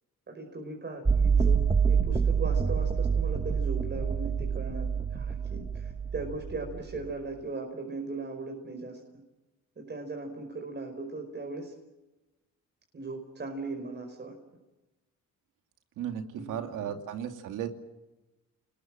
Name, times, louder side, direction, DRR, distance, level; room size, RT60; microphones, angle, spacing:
voice 1, 0.3-9.0 9.8-11.7 12.9-14.4 16.3-16.6, right 3 dB, 35° right, 2 dB, 5.2 m, -38 dB
sound 1, 1.1-7.1, right 6 dB, 20° right, 1.0 m, -27 dB
voice 2, 16.0-17.7, right 9 dB, 90° right, 6 dB, 2.7 m, -35 dB
29.5 x 20.5 x 7.6 m, 1.1 s
cardioid pair, 90°, 30 cm